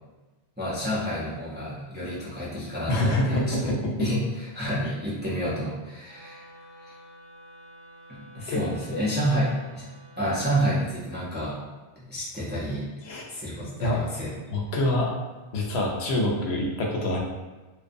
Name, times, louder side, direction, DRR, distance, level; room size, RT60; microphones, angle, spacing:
voice 1, 0.6-3.7 4.0-6.4 6.8-7.0 8.1-9.9 10.2-11.6 12.0-12.9 13.3-14.3, equal, 15° right, -8 dB, 0.3 m, -29 dB
voice 2, 2.9-4.1 8.5-8.6 8.9-9.0 13.0-13.2 13.8-14.0 14.5-15.1 15.5-17.2, left 1 dB, 90° left, -1 dB, 0.8 m, -26 dB
Wind instrument woodwind instrument, 6.0-10.4, equal, 10° left, 1.0 m, -50 dB
2.5 x 2.2 x 2.5 m, 1.2 s
omnidirectional pair, 1.1 m